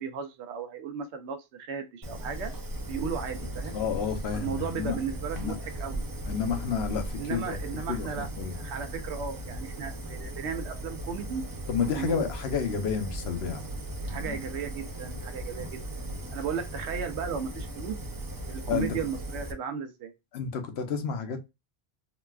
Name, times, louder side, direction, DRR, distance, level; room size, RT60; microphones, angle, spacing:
voice 1, 0.0-2.5 2.9-3.8 4.3-6.0 7.2-8.3 8.5-11.4 12.0-12.3 14.0-18.0 18.5-20.1, right 6 dB, 90° right, 0.9 m, -35 dB
Fire, 2.0-19.5, right 1 dB, 30° right, 0.4 m, -37 dB
voice 2, 3.7-5.0 5.3-5.6 6.3-7.6 7.9-8.5 11.7-13.7 14.1-14.4 15.6-15.7 18.7-18.9 20.3-21.5, left 6 dB, 75° left, 0.9 m, -30 dB
3.9 x 2.3 x 2.2 m
omnidirectional pair, 1.1 m